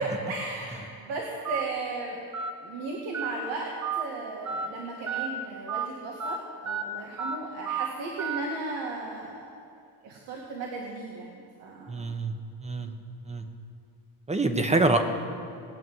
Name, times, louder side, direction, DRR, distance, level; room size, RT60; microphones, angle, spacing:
voice 1, 0.0-2.2 2.6-9.5 10.0-12.1, right 3 dB, 90° right, -2 dB, 2.2 m, -35 dB
Telephone, 1.4-1.6 2.3-2.5 3.1-3.3 3.8-4.0 4.5-4.7 5.1-5.3 5.7-5.8 6.2-6.4 6.7-6.8 7.2-7.4 7.7-7.9 8.2-8.4, right 7 dB, 40° right, 1.2 m, -31 dB
voice 2, 11.9-12.3 12.6-12.9 13.2-13.5 14.3-15.0, right 2 dB, 15° right, 7 dB, 1.2 m, -25 dB
20.0 x 7.3 x 9.4 m, 2.5 s
cardioid pair, 120°, 44 cm